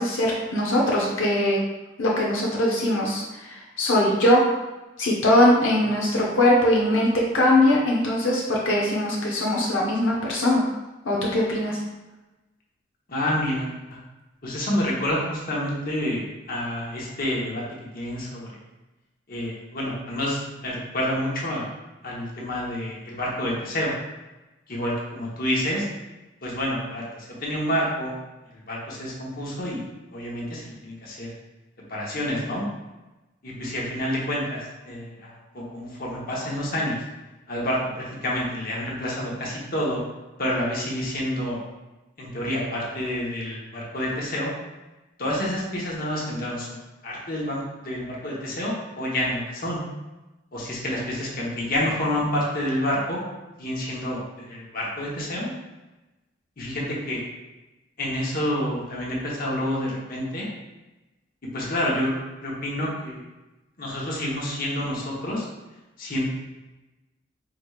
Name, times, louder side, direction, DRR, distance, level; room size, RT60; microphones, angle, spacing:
voice 1, 0.0-1.6 2.0-4.4 5.0-10.6 11.0-11.8, left 1 dB, 85° left, -4 dB, 0.8 m, -21 dB
voice 2, 13.1-14.0 14.4-17.6 17.9-18.5 19.3-21.7 22.0-23.9 24.7-25.9 26.4-28.2 28.7-29.8 30.1-31.3 31.9-32.7 33.4-37.0 37.5-40.0 40.4-41.6 42.2-44.5 45.2-46.8 47.0-49.8 50.5-53.2 53.6-55.5 56.6-57.2 58.0-60.5 61.5-62.1 62.4-63.2 63.8-65.5 66.0-66.3, left 1 dB, 50° left, -4 dB, 1.0 m, -28 dB
4.9 x 3.2 x 2.4 m, 1.1 s
head